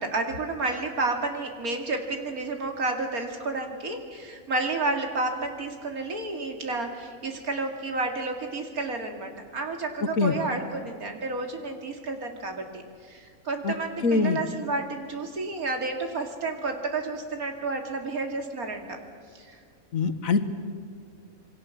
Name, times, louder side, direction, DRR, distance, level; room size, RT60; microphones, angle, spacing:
voice 1, 0.0-19.0 19.3-19.6, right 3 dB, 80° right, 4 dB, 2.9 m, -31 dB
voice 2, 14.0-14.4 19.9-20.4, left 4 dB, 70° left, 11 dB, 1.7 m, -23 dB
27.0 x 23.0 x 7.3 m, 2.1 s
omnidirectional pair, 1.5 m